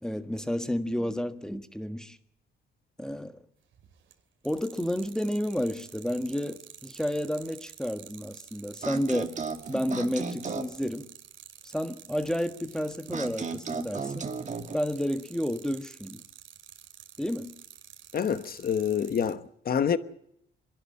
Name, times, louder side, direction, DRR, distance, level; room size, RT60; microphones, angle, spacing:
voice 1, 0.0-2.2 3.0-3.4 4.4-9.4 9.7-11.1 11.7-14.3 14.7-16.2 17.2-17.5, equal, 5° left, 1.5 m, -31 dB
sound 1, 3.7-4.1 4.4-19.3, right 10 dB, 75° right, 2.5 m, -49 dB
sound 2, 8.8-10.8 13.1-14.7, right 5 dB, 40° right, 2.1 m, -35 dB
voice 2, 18.1-20.0, left 7 dB, 50° left, 1.2 m, -27 dB
26.5 x 11.5 x 9.8 m
cardioid pair, 90°, 20 cm